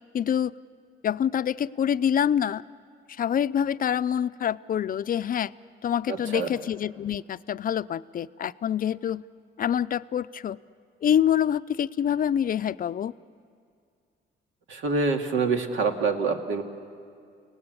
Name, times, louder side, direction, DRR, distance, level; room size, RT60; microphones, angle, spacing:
voice 1, 0.1-0.5 1.0-2.6 3.1-5.5 5.8-9.2 9.6-10.6 11.0-13.1, left 9 dB, 45° left, 16 dB, 0.5 m, -26 dB
voice 2, 6.1-6.5 14.7-16.6, right 4 dB, 80° right, 4 dB, 2.2 m, -26 dB
29.5 x 18.0 x 8.2 m, 2.3 s
cardioid pair, 90°, 20 cm